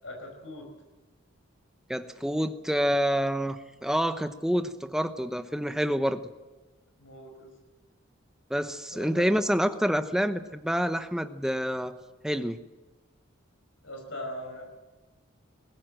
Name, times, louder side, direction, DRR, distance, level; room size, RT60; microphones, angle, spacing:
voice 1, 0.0-0.7 7.0-7.5 8.9-9.3 13.8-14.6, left 1 dB, 70° left, 3 dB, 5.5 m, -40 dB
voice 2, 1.9-6.2 8.5-12.0 12.2-12.6, equal, 5° right, 8 dB, 0.9 m, -27 dB
20.5 x 18.0 x 7.7 m, 1.2 s
head